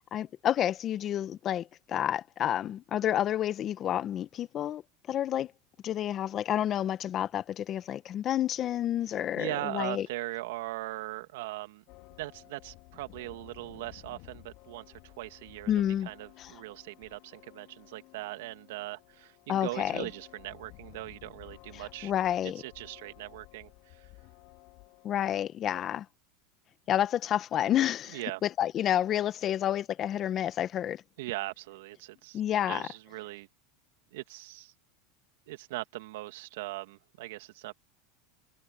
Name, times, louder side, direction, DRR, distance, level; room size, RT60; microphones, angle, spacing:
voice 1, 0.1-4.8 5.1-5.5 5.8-10.1 15.7-16.1 16.4-16.5 19.5-20.0 22.0-22.6 25.0-26.0 26.9-28.2 28.6-31.0 32.3-32.8, left 11 dB, 35° left, 1.3 m, -29 dB
voice 2, 9.1-11.8 12.2-22.1 22.4-24.1 28.1-28.4 31.2-32.4 32.7-33.5 34.1-34.7 35.5-37.8, right 18 dB, 75° right, 2.3 m, -40 dB
sound 1, 11.9-25.3, left 22 dB, 60° left, 2.9 m, -54 dB
supercardioid pair, 120°, 0 cm